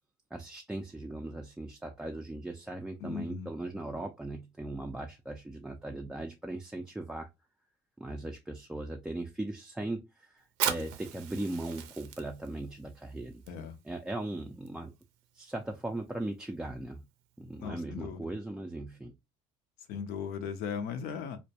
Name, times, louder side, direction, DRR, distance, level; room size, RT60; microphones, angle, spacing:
voice 1, 0.3-7.3 8.0-13.4 13.8-14.9 15.3-17.0 17.4-19.1, right 2 dB, 5° right, 0.3 m, -38 dB
voice 2, 3.0-3.5 13.5-13.8 17.6-18.3 19.9-21.4, left 6 dB, 70° left, 0.5 m, -37 dB
Fire, 10.5-17.7, right 10 dB, 85° right, 0.5 m, -41 dB
2.2 x 2.1 x 2.7 m
supercardioid pair, 95°, 16 cm